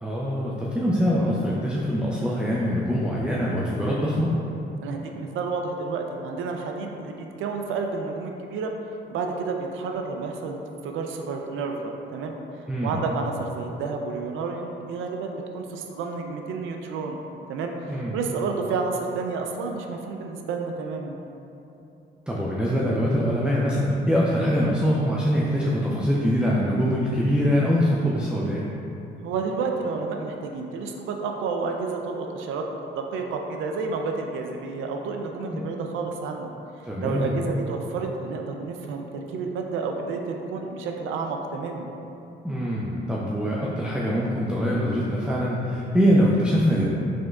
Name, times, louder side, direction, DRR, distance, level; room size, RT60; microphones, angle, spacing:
voice 1, 0.0-4.3 12.7-13.0 17.9-18.2 22.3-28.6 35.5-35.6 36.8-37.4 42.4-46.8, equal, 5° right, -5 dB, 0.4 m, -23 dB
voice 2, 4.8-8.7 9.1-17.2 17.5-21.2 29.2-36.5 36.8-41.9, right 4 dB, 80° right, 3 dB, 0.4 m, -30 dB
5.0 x 3.6 x 2.3 m, 2.9 s
cardioid pair, 90°, 20 cm